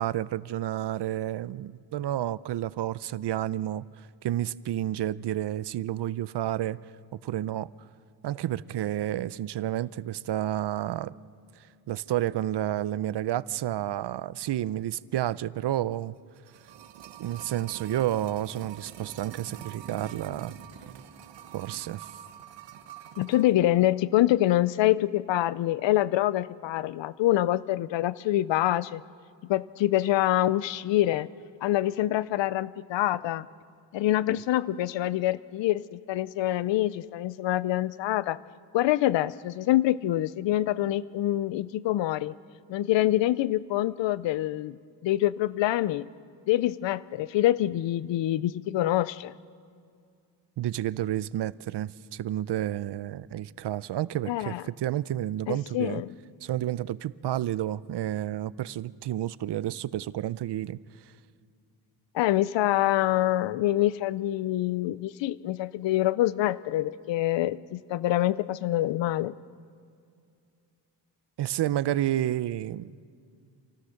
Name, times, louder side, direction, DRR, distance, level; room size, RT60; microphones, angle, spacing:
voice 1, 0.0-6.8 7.1-7.7 8.2-11.1 11.9-16.1 17.2-20.6 21.5-22.2 50.6-56.0 56.4-60.8 71.4-72.9, right 13 dB, 70° right, 18 dB, 0.6 m, -30 dB
sound 1, 16.1-23.6 23.8-23.9, right 9 dB, 85° right, 1.1 m, -45 dB
voice 2, 23.2-29.0 29.5-31.3 31.6-33.5 33.9-38.4 38.7-42.3 42.7-44.8 45.0-46.1 46.5-49.3 54.3-54.6 55.5-56.1 62.1-69.3, left 14 dB, 85° left, 18 dB, 0.6 m, -25 dB
28.0 x 16.0 x 6.5 m, 2.3 s
cardioid pair, 80°, 43 cm